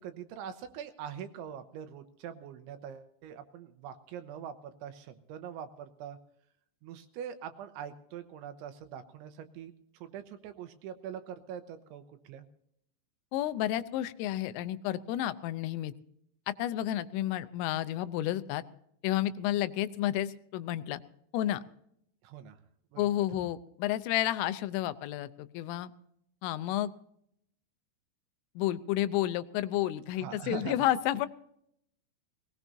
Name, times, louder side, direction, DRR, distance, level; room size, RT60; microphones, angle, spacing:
voice 1, 0.0-6.2 6.8-12.5 22.2-22.6 22.9-23.0 30.2-30.8, right 9 dB, 80° right, 9 dB, 3.1 m, -43 dB
voice 2, 13.3-15.9 16.5-18.6 19.0-21.0 21.3-21.6 23.0-25.9 26.4-26.9 28.6-31.3, left 13 dB, 80° left, 13 dB, 3.2 m, -31 dB
20.0 x 19.5 x 2.7 m, 0.72 s
omnidirectional pair, 5.9 m